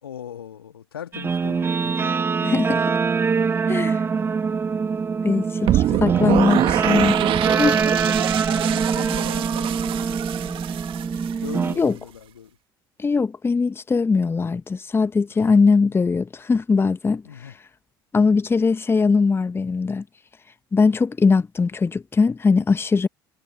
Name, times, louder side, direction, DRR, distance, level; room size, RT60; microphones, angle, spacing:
voice 1, 0.0-2.2 5.6-6.0 6.5-6.8 8.4-10.6 11.4-12.6 17.2-17.6, left 9 dB, 80° left, 1.9 m, -39 dB
Guitar, 1.1-11.7, right 5 dB, 20° right, 0.5 m, -23 dB
voice 2, 2.4-2.8 3.7-4.0 5.2-6.6 6.9-7.2 7.6-7.8 11.8-12.0 13.0-17.2 18.1-20.0 20.7-23.1, left 4 dB, 20° left, 1.2 m, -20 dB
sound 1, 5.7-11.7, right 13 dB, 45° right, 2.2 m, -25 dB
figure-of-eight pair, 65°, 12 cm